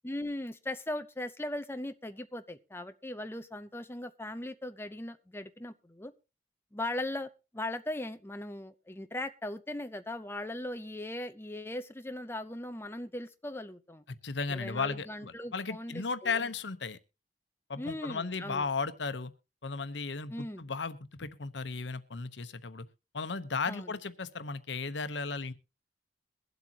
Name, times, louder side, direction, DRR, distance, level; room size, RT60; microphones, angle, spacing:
voice 1, 0.0-6.1 6.7-14.0 14.5-16.5 17.8-18.7 20.3-20.6 23.7-23.9, left 1 dB, 15° left, 9 dB, 0.7 m, -39 dB
voice 2, 14.1-17.0 17.7-19.3 19.6-22.8 23.1-25.5, left 4 dB, 85° left, 13 dB, 0.9 m, -35 dB
22.5 x 8.0 x 2.9 m, 0.30 s
head